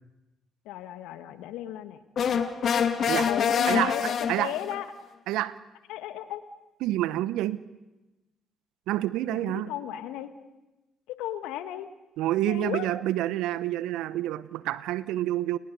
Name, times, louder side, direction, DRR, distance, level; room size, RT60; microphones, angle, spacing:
voice 1, 0.6-2.0 3.1-4.9 5.9-6.4 9.3-10.3 11.1-11.9 12.5-12.9, left 12 dB, 70° left, 10 dB, 1.6 m, -35 dB
sound 1, 2.2-4.8, left 7 dB, 55° left, 2.1 m, -26 dB
voice 2, 3.7-4.5 5.3-5.6 6.8-7.6 8.9-9.7 12.2-15.6, right 14 dB, 70° right, 17 dB, 0.8 m, -28 dB
29.5 x 29.0 x 5.4 m, 1.0 s
hypercardioid pair, 50°, 0 cm